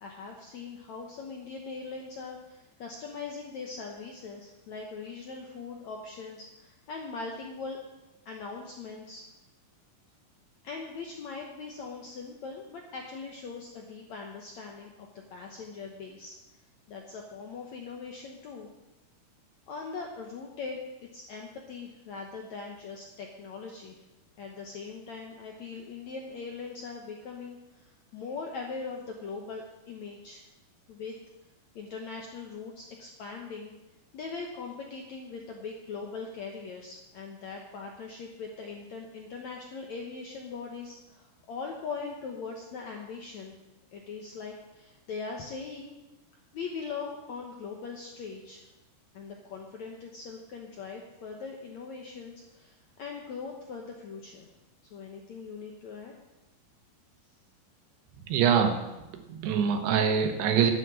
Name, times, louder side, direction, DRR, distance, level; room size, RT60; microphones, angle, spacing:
voice 1, 0.0-7.8 8.3-9.3 10.6-16.4 16.9-18.7 19.7-24.0 24.4-30.5 30.9-31.2 31.8-33.7 34.1-43.6 43.9-46.0 46.5-48.7 49.1-54.5 54.9-56.1, left 4 dB, 70° left, 1 dB, 1.8 m, -41 dB
voice 2, 58.3-58.8 59.1-60.7, right 7 dB, 80° right, 6 dB, 3.3 m, -24 dB
11.0 x 9.7 x 7.6 m, 0.98 s
omnidirectional pair, 4.8 m